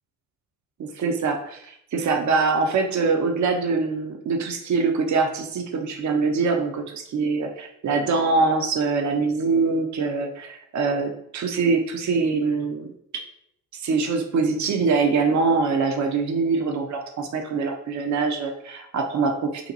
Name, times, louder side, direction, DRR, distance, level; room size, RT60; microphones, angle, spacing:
voice 1, 0.8-12.9 13.1-13.2 13.8-19.7, right 4 dB, 35° right, 3 dB, 0.7 m, -24 dB
2.9 x 2.2 x 3.9 m, 0.72 s
hypercardioid pair, 50°, 48 cm